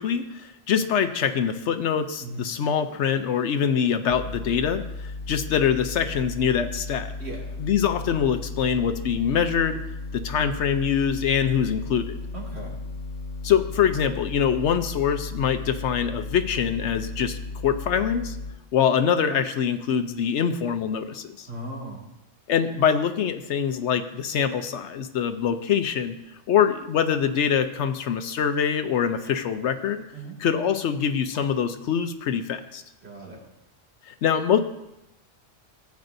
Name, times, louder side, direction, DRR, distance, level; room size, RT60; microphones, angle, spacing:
voice 1, 0.0-7.1 7.6-9.8 10.1-12.2 13.4-17.4 17.6-18.4 18.7-21.5 22.5-26.2 26.5-30.0 30.4-32.8 34.1-34.6, left 8 dB, 70° left, 9 dB, 0.9 m, -24 dB
sound 1, 4.1-18.5, left 3 dB, 90° left, 1.6 m, -35 dB
voice 2, 7.2-7.6 12.3-12.7 21.5-22.0 30.1-30.4 33.0-33.4, right 2 dB, 55° right, -4 dB, 2.7 m, -37 dB
14.5 x 9.4 x 2.6 m, 0.88 s
omnidirectional pair, 1.3 m